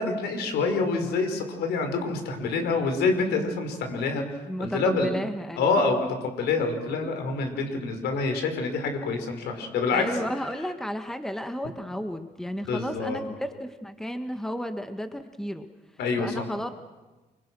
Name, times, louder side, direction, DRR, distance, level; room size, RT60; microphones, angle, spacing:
voice 1, 0.0-5.1 5.6-10.0 12.7-13.2 16.0-16.5, left 4 dB, 75° left, 5 dB, 5.4 m, -27 dB
voice 2, 4.5-5.8 9.9-15.7 16.2-16.8, equal, 5° left, 8 dB, 1.7 m, -33 dB
30.0 x 24.0 x 6.3 m, 1.2 s
cardioid pair, 110°, 17 cm